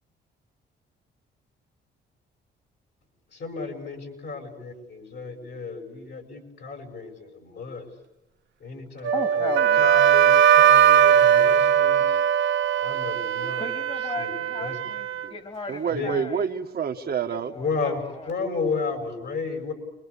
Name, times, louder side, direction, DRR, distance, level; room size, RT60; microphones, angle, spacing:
voice 1, 3.3-7.9 8.6-12.0 12.8-13.7 14.2-14.8 15.9-16.1 17.5-19.7, left 4 dB, 60° left, 4 dB, 7.2 m, -33 dB
Wind instrument woodwind instrument, 9.0-13.2, right 9 dB, 70° right, 1.4 m, -19 dB
voice 2, 9.1-9.9 13.6-16.5 17.5-18.3, left 3 dB, 30° left, 6 dB, 3.0 m, -36 dB
Wind instrument woodwind instrument 2, 9.6-15.3, right 11 dB, 85° right, 0.9 m, -25 dB
voice 3, 15.7-17.5, right 6 dB, 50° right, 4 dB, 1.7 m, -28 dB
29.0 x 23.5 x 8.5 m, 0.93 s
cardioid pair, 90°, 20 cm